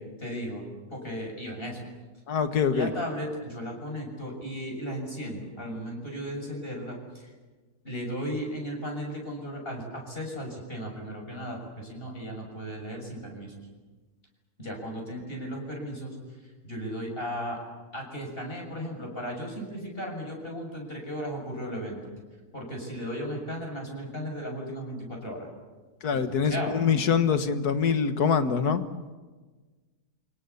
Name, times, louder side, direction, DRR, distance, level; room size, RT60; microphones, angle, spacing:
voice 1, 0.2-0.6 0.9-1.9 2.7-7.3 7.8-13.5 14.6-16.2 16.6-17.6 17.9-22.1 22.5-25.5 26.1-26.7, equal, 35° left, 0 dB, 7.1 m, -35 dB
voice 2, 2.3-2.9 26.0-28.8, left 6 dB, 75° left, 10 dB, 1.9 m, -24 dB
29.0 x 25.5 x 7.0 m, 1.3 s
omnidirectional pair, 1.7 m